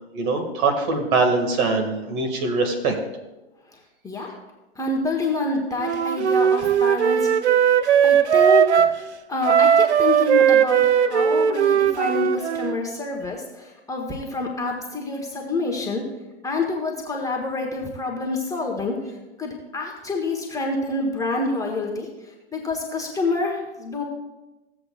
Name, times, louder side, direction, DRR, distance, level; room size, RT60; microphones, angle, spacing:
voice 1, 0.1-3.0, right 3 dB, 50° right, 4 dB, 2.1 m, -22 dB
voice 2, 4.7-7.3 8.0-8.9 9.3-16.0 16.4-24.0, left 3 dB, 10° left, 0 dB, 1.2 m, -27 dB
Wind instrument woodwind instrument, 5.8-9.0 9.4-12.8, right 8 dB, 80° right, 0.7 m, -18 dB
15.5 x 7.9 x 2.4 m, 1.1 s
hypercardioid pair, 115°, 33 cm